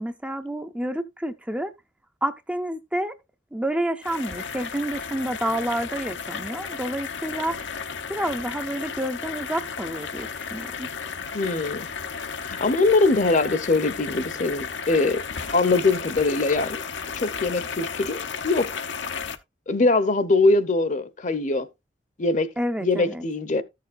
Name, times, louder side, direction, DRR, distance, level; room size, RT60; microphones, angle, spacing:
voice 1, 0.0-1.7 2.2-3.1 3.5-7.6 8.1-10.9 22.6-23.2, right 1 dB, 5° right, 0.5 m, -29 dB
sound 1, 4.0-19.4, left 6 dB, 85° left, 0.8 m, -34 dB
voice 2, 11.3-11.9 12.4-15.2 15.5-16.8 17.1-18.7 19.7-21.7 22.2-22.5 22.8-23.6, left 3 dB, 40° left, 0.7 m, -22 dB
13.5 x 6.8 x 2.5 m
head